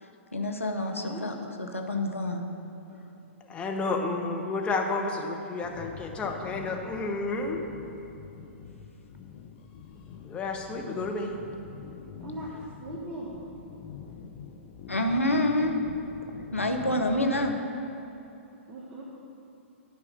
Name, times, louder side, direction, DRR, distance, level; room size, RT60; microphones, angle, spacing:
voice 1, 0.0-2.4 2.9-3.0 14.9-15.7 16.5-17.5, left 1 dB, 85° left, 4 dB, 0.9 m, -28 dB
voice 2, 0.9-1.3 12.2-13.4 18.7-19.0, right 1 dB, 15° right, -6 dB, 1.3 m, -39 dB
voice 3, 3.5-7.6 10.2-11.4, left 3 dB, 15° left, 1 dB, 0.9 m, -31 dB
sound 1, 5.6-17.5, left 7 dB, 40° left, 0.6 m, -45 dB
10.0 x 4.7 x 6.7 m, 2.9 s
figure-of-eight pair, 115°, 7 cm